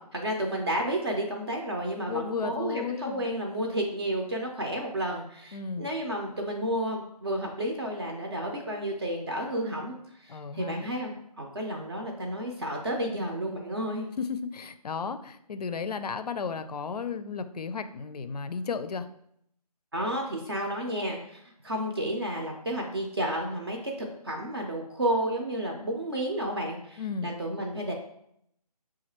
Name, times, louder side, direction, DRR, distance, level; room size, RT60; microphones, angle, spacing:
voice 1, 0.0-14.1 19.9-27.9, right 1 dB, 40° right, 1 dB, 0.5 m, -31 dB
voice 2, 2.1-3.3 5.5-5.9 10.3-10.9 14.2-19.1 27.0-27.3, left 5 dB, 70° left, 10 dB, 0.4 m, -34 dB
6.1 x 2.4 x 2.9 m, 0.73 s
figure-of-eight pair, 165°, 21 cm